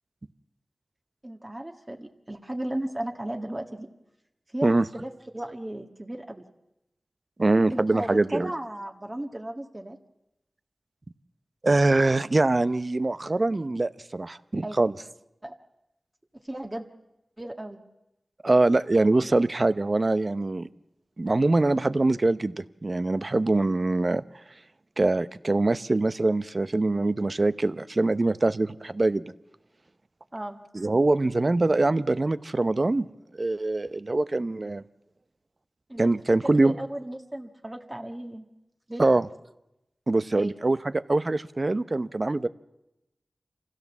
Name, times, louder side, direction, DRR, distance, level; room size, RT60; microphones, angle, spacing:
voice 1, 1.2-3.9 4.5-6.4 7.7-10.0 14.6-14.8 15.4-15.5 16.4-16.8 17.4-17.8 30.3-30.6 35.9-36.1 36.4-38.5 38.9-39.0 40.3-40.5, right 1 dB, 25° right, 4 dB, 1.6 m, -35 dB
voice 2, 7.4-8.5 11.6-14.9 18.4-20.7 21.2-24.2 25.0-29.3 30.7-33.1 33.3-34.8 36.0-36.7 39.0-39.3 40.1-42.5, right 2 dB, 45° right, 14 dB, 0.7 m, -23 dB
26.0 x 16.0 x 7.2 m, 0.92 s
wide cardioid pair, 50°, 0 cm